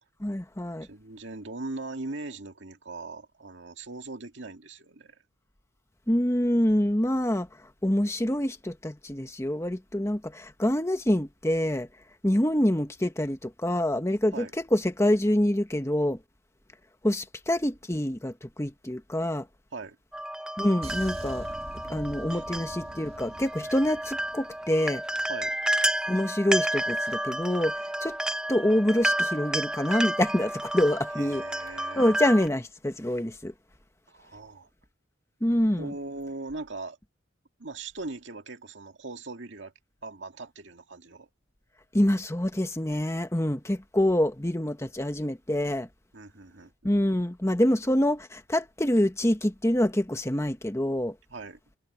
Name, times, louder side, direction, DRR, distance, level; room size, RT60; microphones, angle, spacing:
voice 1, 0.2-0.9 6.1-7.5 7.8-11.9 12.2-14.5 14.7-16.2 17.0-19.5 20.6-21.5 21.9-25.0 26.1-28.2 28.5-31.4 32.0-33.5 35.4-35.9 41.9-45.9 46.8-51.1, left 1 dB, 15° left, 1.3 m, -26 dB
voice 2, 0.8-5.2 14.3-14.5 19.7-20.0 22.3-22.4 25.3-25.6 31.1-32.2 34.1-34.7 35.8-37.0 37.6-39.7 40.0-41.3 46.1-46.7 51.3-51.6, right 3 dB, 65° right, 2.2 m, -40 dB
sound 1, 20.1-32.5, right 1 dB, 5° right, 0.6 m, -31 dB
sound 2, 20.8-25.4 25.6-25.9, right 1 dB, 30° right, 1.9 m, -44 dB
head